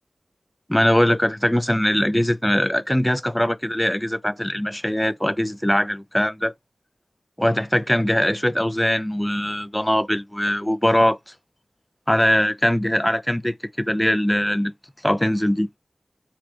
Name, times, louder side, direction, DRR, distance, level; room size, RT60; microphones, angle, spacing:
voice 1, 0.7-6.5 7.4-11.2 12.1-14.7 15.0-15.7, equal, 10° left, 0.4 m, -21 dB
4.6 x 2.4 x 4.4 m
wide cardioid pair, 55°, 0 cm